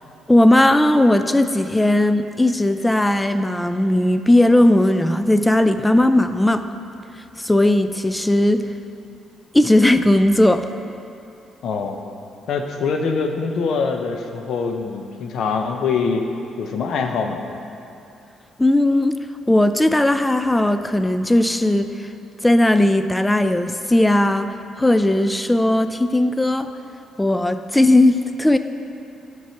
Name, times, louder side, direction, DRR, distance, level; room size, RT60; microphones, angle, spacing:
voice 1, 0.3-6.7 7.4-8.7 9.5-10.7 18.6-19.2 19.5-22.1 22.4-26.7 27.2-28.6, left 1 dB, 10° left, 10 dB, 0.4 m, -17 dB
voice 2, 11.6-12.0 12.5-16.3 16.6-17.4, left 5 dB, 70° left, 4 dB, 0.7 m, -23 dB
9.3 x 4.7 x 5.8 m, 2.8 s
cardioid pair, 90°, 0 cm